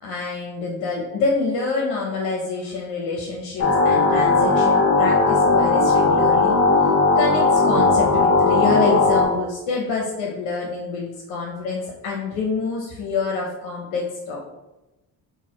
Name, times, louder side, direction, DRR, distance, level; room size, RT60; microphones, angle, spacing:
voice 1, 0.0-14.5, left 4 dB, 80° left, -1 dB, 0.7 m, -27 dB
sound 1, 3.6-9.3, left 3 dB, 35° left, 0.9 m, -17 dB
4.0 x 2.4 x 2.9 m, 1.0 s
supercardioid pair, 55°, 44 cm